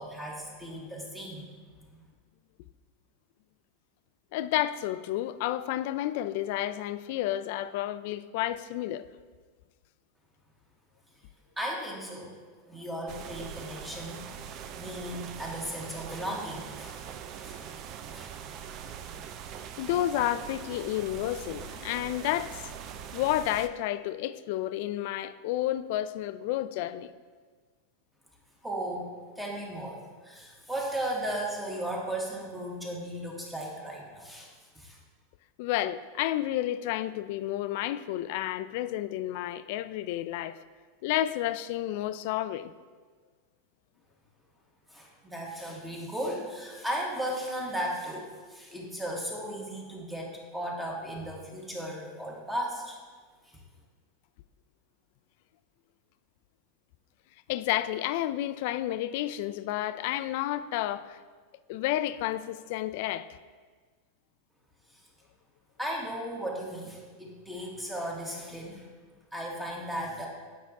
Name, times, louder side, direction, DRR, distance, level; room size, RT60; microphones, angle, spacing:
voice 1, 0.0-1.6 1.9-2.1 11.6-12.3 12.7-14.3 14.8-17.0 17.4-17.6 18.1-18.3 28.6-29.1 29.3-35.0 44.9-53.0 53.4-53.6 64.9-65.1 65.8-68.9 69.3-70.3, right 1 dB, 5° right, 1.5 m, -36 dB
voice 2, 4.3-9.0 19.8-22.7 23.1-27.1 35.6-40.6 41.0-42.7 57.5-61.2 61.7-63.3, left 13 dB, 60° left, 0.3 m, -31 dB
sound 1, 13.1-23.7, right 8 dB, 40° right, 0.5 m, -42 dB
8.3 x 5.9 x 3.6 m
supercardioid pair, 135°, 0 cm